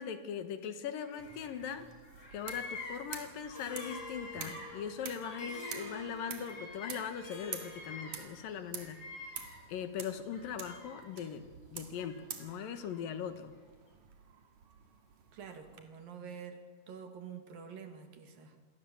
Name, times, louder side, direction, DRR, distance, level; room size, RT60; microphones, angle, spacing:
voice 1, 0.0-1.9 2.3-13.5, left 8 dB, 75° left, 9 dB, 3.2 m, -40 dB
Bird vocalization bird call bird song, 1.0-1.8 2.0-7.1 7.4-9.8 10.3-11.2 12.0-13.0, left 3 dB, 60° left, 6.1 m, -48 dB
sound 1, 1.2-15.8, right 7 dB, 60° right, 3.1 m, -49 dB
Harp, 3.5-8.6, left 2 dB, 5° right, 4.5 m, -49 dB
voice 2, 15.3-18.6, right 6 dB, 75° right, 6 dB, 3.9 m, -47 dB
27.0 x 21.5 x 7.3 m, 1.5 s
omnidirectional pair, 4.0 m